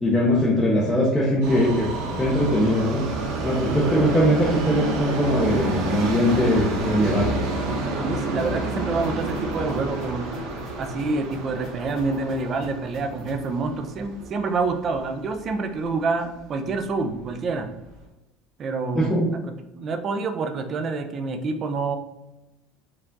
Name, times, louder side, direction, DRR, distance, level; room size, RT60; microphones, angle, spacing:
voice 1, 0.0-1.9 2.2-3.0 3.4-7.3 18.9-19.3, equal, 10° left, -6 dB, 0.7 m, -21 dB
Subway metro underground, 1.4-15.5 15.8-15.9 16.8-16.9 17.2-17.3 17.9-18.0, right 2 dB, 50° right, 0.9 m, -30 dB
voice 2, 8.0-10.3 10.8-17.7 18.6-19.2 19.7-22.0, right 3 dB, 25° right, 6 dB, 0.4 m, -27 dB
sound 1, 8.4-13.5, left 4 dB, 45° left, 1.4 m, -41 dB
4.6 x 2.4 x 3.8 m, 0.97 s
cardioid pair, 170°, 0 cm